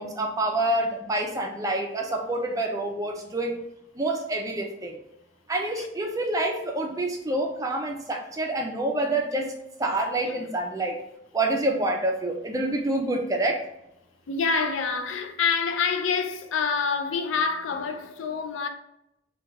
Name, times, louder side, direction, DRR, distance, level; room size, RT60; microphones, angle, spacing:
voice 1, 0.0-3.6 4.0-5.0 5.5-11.0 11.3-13.6, right 2 dB, 15° right, 0.4 m, -27 dB
voice 2, 14.3-18.7, left 5 dB, 85° left, 0.4 m, -27 dB
3.2 x 2.3 x 3.5 m
head